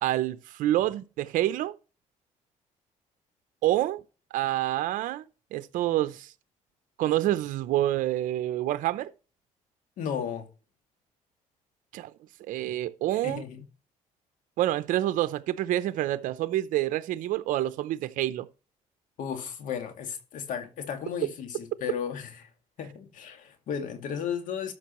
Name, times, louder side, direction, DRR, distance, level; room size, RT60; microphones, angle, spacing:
voice 1, 0.0-1.7 3.6-4.0 4.3-5.2 5.5-6.3 7.0-9.1 11.9-12.1 12.5-13.4 14.6-18.5, right 14 dB, 80° right, 0.7 m, -27 dB
voice 2, 10.0-10.5 13.2-13.6 19.2-22.5 22.8-24.7, left 8 dB, 75° left, 2.0 m, -34 dB
13.0 x 6.0 x 3.0 m
cardioid pair, 100°, 14 cm